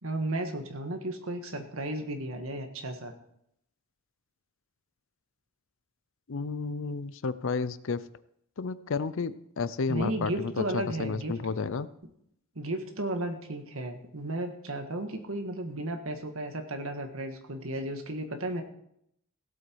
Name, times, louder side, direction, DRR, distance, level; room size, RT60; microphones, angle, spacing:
voice 1, 0.0-3.1 9.9-11.3 12.5-18.6, right 1 dB, 65° right, 5 dB, 1.8 m, -34 dB
voice 2, 6.3-8.0 8.6-11.9, left 4 dB, 60° left, 16 dB, 0.5 m, -32 dB
17.0 x 8.3 x 4.6 m, 0.73 s
head